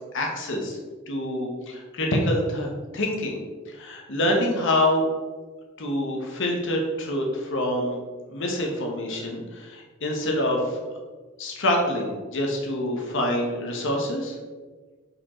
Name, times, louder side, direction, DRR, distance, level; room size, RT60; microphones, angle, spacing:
voice 1, 0.1-0.8 1.1-2.7 2.9-3.3 3.7-5.1 5.8-8.0 8.3-10.8 11.4-14.4, left 1 dB, 65° left, 1 dB, 1.1 m, -26 dB
5.1 x 4.8 x 4.3 m, 1.4 s
head